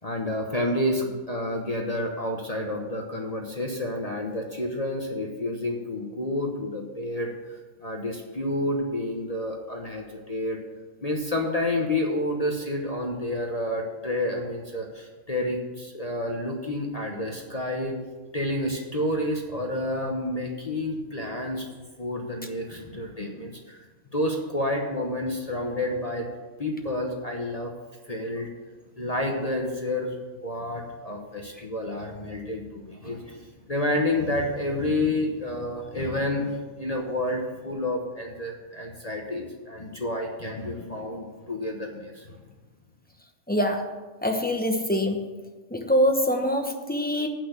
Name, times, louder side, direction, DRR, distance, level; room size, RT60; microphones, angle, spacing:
voice 1, 0.0-7.3 7.8-10.6 11.0-18.0 18.3-21.7 22.0-23.8 24.1-26.3 26.6-27.7 28.1-28.5 29.0-30.1 30.4-42.4, left 1 dB, 30° left, 0 dB, 1.1 m, -29 dB
voice 2, 43.5-43.9 44.2-45.3 45.7-47.3, equal, 10° left, 3 dB, 0.8 m, -24 dB
8.5 x 6.2 x 8.1 m, 1.2 s
omnidirectional pair, 1.4 m